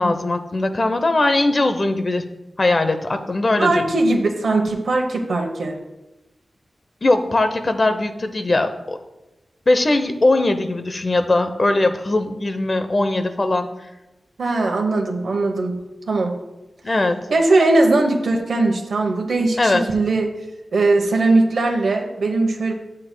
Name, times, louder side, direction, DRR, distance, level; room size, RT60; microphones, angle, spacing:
voice 1, 0.0-2.2 2.6-3.8 7.0-9.0 9.7-13.7 16.8-17.2 19.6-19.9, left 2 dB, 40° left, 8 dB, 0.8 m, -20 dB
voice 2, 3.6-5.8 14.4-15.8 16.1-16.3 17.3-20.3 20.7-22.7, right 2 dB, 90° right, 1 dB, 0.9 m, -19 dB
12.0 x 7.6 x 2.2 m, 1.0 s
wide cardioid pair, 85°, 0 cm